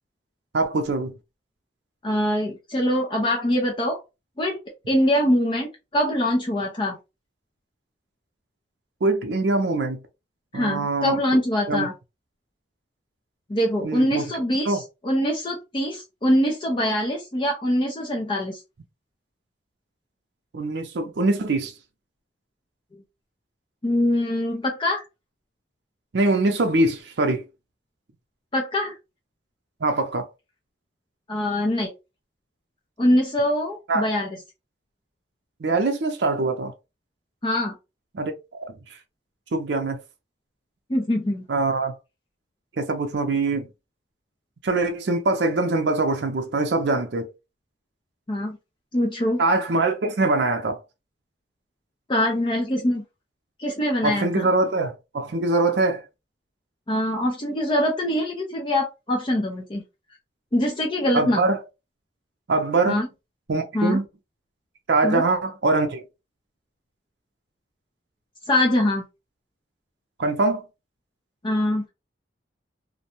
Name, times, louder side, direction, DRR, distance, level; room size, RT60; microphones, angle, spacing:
voice 1, 0.5-1.1 9.0-10.0 10.5-11.2 11.7-11.9 13.8-14.3 14.7-14.8 20.5-21.7 26.1-27.4 29.8-30.3 33.9-34.1 35.6-36.7 38.1-38.7 39.5-40.0 41.5-41.9 42.8-43.7 44.6-47.3 49.4-50.8 54.0-56.0 61.1-61.6 62.5-63.0 63.5-64.1 64.9-66.0 70.2-70.6, right 2 dB, 65° right, 0.5 m, -23 dB
voice 2, 2.0-4.0 4.4-4.6 4.9-7.0 10.5-11.9 13.5-18.6 23.8-25.0 28.5-29.0 31.3-31.9 33.0-34.4 37.4-37.7 40.9-41.5 48.3-48.6 48.9-49.4 52.1-53.0 53.6-54.5 56.9-59.8 60.5-61.5 62.9-63.1 63.7-64.0 65.0-65.2 68.5-69.0 71.4-71.9, left 1 dB, 25° left, 0.5 m, -23 dB
2.6 x 2.1 x 2.8 m
head